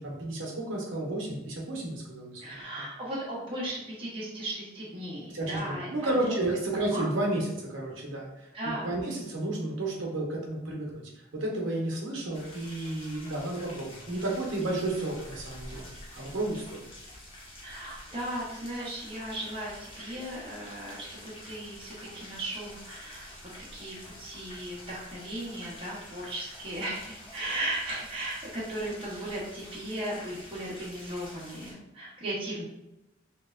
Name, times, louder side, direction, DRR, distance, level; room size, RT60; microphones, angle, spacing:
voice 1, 0.0-2.6 5.3-8.3 8.6-11.0 11.3-16.8, right 2 dB, 70° right, -1 dB, 0.7 m, -32 dB
voice 2, 2.4-6.4 6.9-7.1 8.5-9.0 17.6-23.3 23.7-32.7, right 1 dB, 30° right, -6 dB, 0.7 m, -36 dB
sound 1, 12.3-31.7, left 1 dB, 25° left, 0.7 m, -48 dB
2.9 x 2.1 x 2.3 m, 0.95 s
head